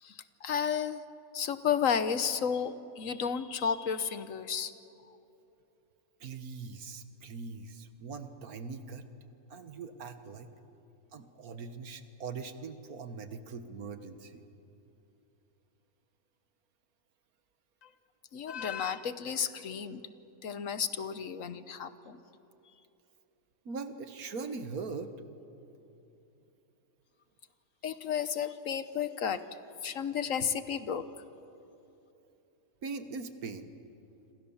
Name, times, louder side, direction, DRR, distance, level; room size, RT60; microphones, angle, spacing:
voice 1, 0.0-1.0 1.3-4.7 17.8-17.9 18.3-20.0 20.4-22.2 27.8-29.5 29.8-31.0, left 7 dB, 65° left, 12 dB, 1.4 m, -32 dB
voice 2, 6.2-9.0 9.5-10.5 11.1-14.5 23.7-25.1 32.8-33.7, right 4 dB, 85° right, 10 dB, 1.8 m, -41 dB
28.5 x 26.5 x 7.2 m, 2.9 s
omnidirectional pair, 1.5 m